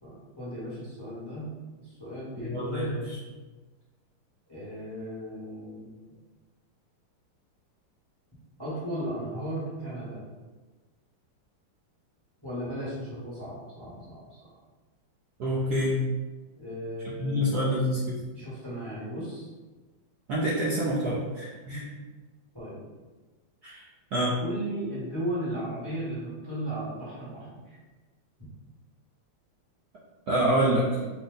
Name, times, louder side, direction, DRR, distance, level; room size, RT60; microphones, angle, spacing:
voice 1, 0.0-1.5 1.8-3.0 4.5-5.9 8.6-10.2 12.4-14.6 16.6-17.6 18.3-19.5 22.5-22.8 24.4-27.8, right 1 dB, 15° left, -9 dB, 1.0 m, -36 dB
voice 2, 2.4-3.2 15.4-16.0 17.2-18.2 20.3-21.9 23.6-23.8 24.1-24.4 30.3-31.0, equal, 65° right, -7 dB, 1.0 m, -27 dB
5.3 x 2.2 x 3.8 m, 1.3 s
omnidirectional pair, 2.4 m